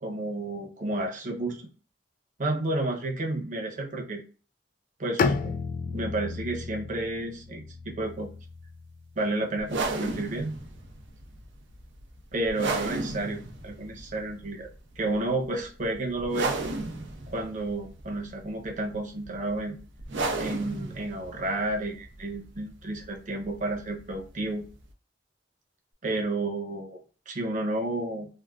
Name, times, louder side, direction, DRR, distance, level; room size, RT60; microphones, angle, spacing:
voice 1, 0.0-1.7 2.4-4.2 5.0-5.6 5.8-8.3 9.2-10.6 12.3-14.7 15.0-16.5 17.3-19.8 20.3-24.6 26.0-27.0 27.3-28.3, right 2 dB, 45° right, 1 dB, 0.8 m, -31 dB
Bowed string instrument, 5.2-9.1, left 5 dB, 45° left, 0.3 m, -32 dB
sound 1, 9.6-24.9, right 3 dB, 85° right, 0.6 m, -36 dB
3.5 x 2.3 x 2.3 m, 0.37 s
head